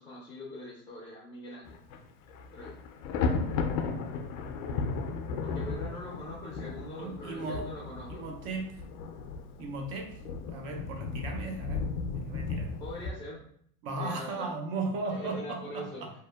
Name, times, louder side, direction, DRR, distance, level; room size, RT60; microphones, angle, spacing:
voice 1, 0.0-1.8 2.5-2.8 5.4-8.4 12.8-13.4 14.0-14.5 15.1-16.0, left 1 dB, 10° left, -4 dB, 0.4 m, -42 dB
Thunder, 1.7-2.0 2.3-13.1, left 4 dB, 65° left, 0.5 m, -35 dB
voice 2, 7.0-7.8 8.2-8.8 9.6-10.2 10.5-12.7 13.8-16.1, right 3 dB, 50° right, 3 dB, 0.5 m, -36 dB
2.7 x 2.1 x 2.2 m, 0.63 s
hypercardioid pair, 110°, 41 cm